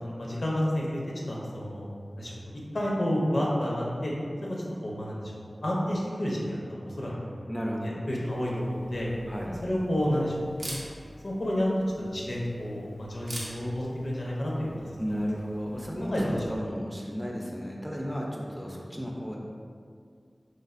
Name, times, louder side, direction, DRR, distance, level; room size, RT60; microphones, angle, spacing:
voice 1, 0.0-1.0 1.3-1.9 2.2-4.1 4.4-5.3 5.6-7.3 7.8-9.1 9.6-10.8 11.2-11.7 12.0-14.7 15.1-15.3 16.1-16.4, equal, 75° left, -4 dB, 0.6 m, -30 dB
voice 2, 7.5-8.0 9.3-9.6 15.0-16.2 16.5-19.4, equal, ahead, -2 dB, 0.4 m, -34 dB
Camera, 8.2-16.6, right 1 dB, 85° right, 0.5 m, -46 dB
3.2 x 2.3 x 2.4 m, 2.2 s
wide cardioid pair, 40°, 0 cm